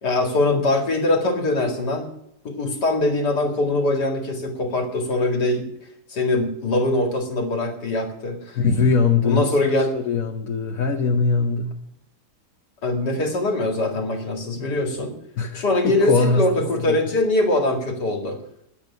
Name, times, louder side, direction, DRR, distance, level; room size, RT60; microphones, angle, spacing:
voice 1, 0.0-2.1 2.4-5.7 6.1-8.6 9.2-10.0 12.8-15.1 15.5-18.4, left 2 dB, 80° left, 3 dB, 2.7 m, -22 dB
voice 2, 8.6-9.5 9.9-11.8 15.4-16.5 16.8-17.0, left 4 dB, 60° left, 2 dB, 1.4 m, -21 dB
11.0 x 8.1 x 9.7 m, 0.78 s
omnidirectional pair, 1.7 m